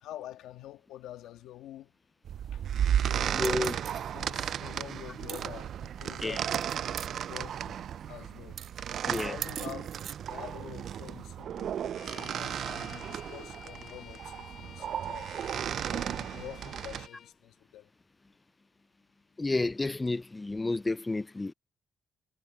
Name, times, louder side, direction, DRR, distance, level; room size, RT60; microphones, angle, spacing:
voice 1, 0.0-1.9 2.3-2.7 3.0-3.6 4.1-6.8 7.2-9.9 10.3-15.4 15.8-17.9, left 13 dB, 90° left, 1.9 m, -47 dB
sound 1, 2.2-17.1, right 9 dB, 65° right, 0.4 m, -34 dB
voice 2, 3.3-3.8 6.2-6.4 9.1-9.4 19.4-21.5, left 2 dB, 20° left, 0.3 m, -31 dB
Bowed string instrument, 11.9-17.3, left 8 dB, 65° left, 1.6 m, -51 dB
cardioid pair, 90°, 0 cm